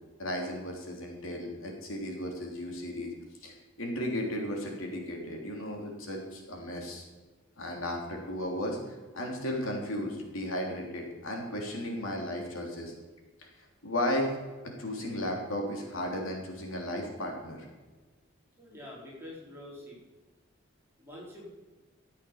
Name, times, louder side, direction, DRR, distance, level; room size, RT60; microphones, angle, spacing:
voice 1, 0.2-3.1 3.4-7.0 7.6-12.9 13.4-14.3 14.8-17.6, left 1 dB, 75° left, 1 dB, 3.4 m, -35 dB
voice 2, 18.6-20.0 21.0-21.5, left 1 dB, 10° right, -5 dB, 4.2 m, -46 dB
14.0 x 8.4 x 7.1 m, 1.3 s
head